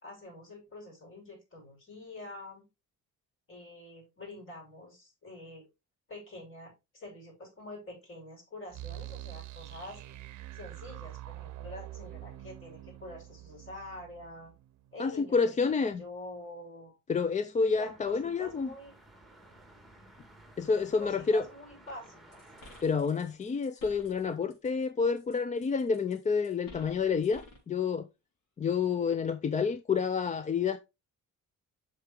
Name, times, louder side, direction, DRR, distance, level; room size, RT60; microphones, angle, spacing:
voice 1, 0.0-2.6 3.5-5.7 6.1-10.0 10.5-14.5 14.9-15.4 15.8-17.0 17.7-19.0 21.0-22.4, left 1 dB, 40° left, 5.7 m, -46 dB
sound 1, 8.7-15.5, right 15 dB, 60° right, 0.7 m, -45 dB
voice 2, 15.0-16.0 17.1-18.7 20.6-21.4 22.8-28.1 28.6-30.8, left 5 dB, 25° left, 0.4 m, -29 dB
sound 2, 17.7-22.8, right 1 dB, ahead, 1.5 m, -56 dB
sound 3, 22.3-24.9 25.2-27.7, left 2 dB, 85° left, 3.6 m, -54 dB
8.0 x 5.8 x 3.4 m
cardioid pair, 155°, 32 cm